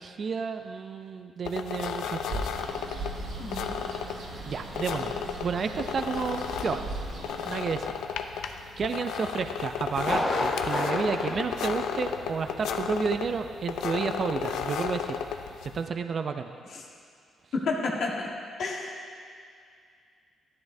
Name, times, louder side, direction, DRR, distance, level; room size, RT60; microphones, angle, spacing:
voice 1, 0.0-2.5 4.5-5.1 5.4-6.9 7.5-7.9 8.8-15.2 15.7-16.5, right 5 dB, 50° right, 8 dB, 0.4 m, -31 dB
sound 1, 1.4-15.8, left 7 dB, 90° left, 0.5 m, -34 dB
Bird, 2.1-8.0, right 2 dB, 85° right, 1.8 m, -39 dB
voice 2, 3.4-3.7 16.7-16.8 17.5-18.3 18.6-19.0, left 3 dB, 65° left, -1 dB, 1.3 m, -31 dB
Thunder, 10.0-12.6 12.8-12.9 13.5-13.6, left 1 dB, 30° left, 1.4 m, -32 dB
12.0 x 10.5 x 2.7 m, 2.2 s
cardioid pair, 100°, 0 cm